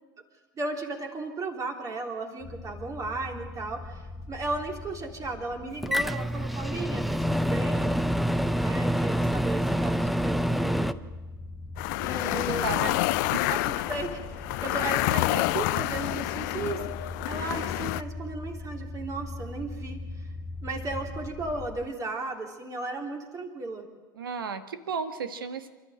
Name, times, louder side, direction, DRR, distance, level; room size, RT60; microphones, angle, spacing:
voice 1, 0.5-7.9 8.6-11.0 12.0-14.2 14.4-20.3 20.6-23.9, right 3 dB, 30° right, 2 dB, 3.3 m, -35 dB
sound 1, 2.4-21.8, left 2 dB, 25° left, 2.1 m, -41 dB
Microwave oven, 5.8-10.9, equal, ahead, 0.6 m, -26 dB
sound 2, 11.8-18.0, left 19 dB, 55° left, 0.5 m, -28 dB
voice 2, 12.2-13.0 13.3-13.5 24.1-25.7, right 6 dB, 75° right, 10 dB, 1.4 m, -34 dB
28.0 x 12.5 x 7.8 m, 1.3 s
figure-of-eight pair, 80°, 12 cm